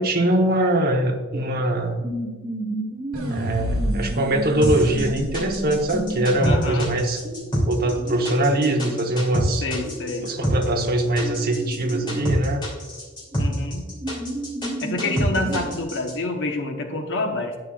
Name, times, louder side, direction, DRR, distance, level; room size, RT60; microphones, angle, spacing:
voice 1, 0.0-2.0 3.3-7.2 7.7-9.6 10.2-12.6, right 1 dB, 45° right, 3 dB, 1.0 m, -22 dB
sound 1, 1.3-1.4 2.0-8.9 9.5-12.4 13.3-13.4 13.8-15.7, right 1 dB, 15° right, 1.4 m, -32 dB
sound 2, 3.1-6.4, equal, 75° right, 2.3 m, -30 dB
sound 3, 4.6-16.1, equal, 20° left, 2.7 m, -26 dB
voice 2, 6.4-6.9 9.6-10.3 13.4-13.9 14.8-17.6, left 2 dB, 55° left, 3 dB, 1.1 m, -27 dB
11.0 x 8.9 x 2.4 m, 1.3 s
head